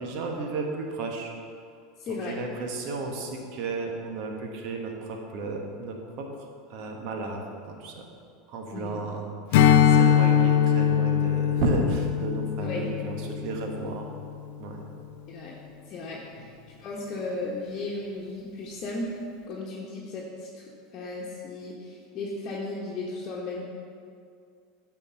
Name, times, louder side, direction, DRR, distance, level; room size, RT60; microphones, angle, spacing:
voice 1, 0.0-1.3 2.1-6.3 6.7-7.4 7.8-8.0 8.5-9.2 9.5-14.1 14.6-14.8 16.4-16.5, right 3 dB, 60° right, 2 dB, 1.2 m, -33 dB
voice 2, 2.0-2.4 8.7-9.0 12.6-12.9 15.3-15.5 15.9-16.5 16.8-19.2 19.5-23.6, left 2 dB, 45° left, -4 dB, 1.1 m, -35 dB
Strum, 9.5-14.3, left 8 dB, 70° left, 0.5 m, -22 dB
8.3 x 4.4 x 5.6 m, 2.3 s
hypercardioid pair, 85°, 0 cm